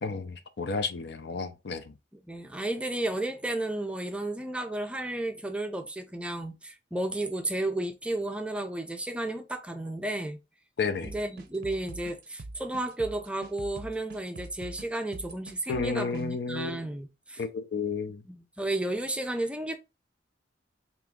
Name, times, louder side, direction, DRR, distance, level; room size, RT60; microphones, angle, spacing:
voice 1, 0.0-1.9 10.8-11.1 15.7-16.8 17.4-18.2, left 4 dB, 65° left, 0.5 m, -32 dB
voice 2, 2.3-10.4 11.0-17.4 18.3-19.8, right 1 dB, 5° right, 0.5 m, -33 dB
sound 1, 11.0-16.3, right 2 dB, 55° right, 0.5 m, -44 dB
3.6 x 2.9 x 3.5 m
head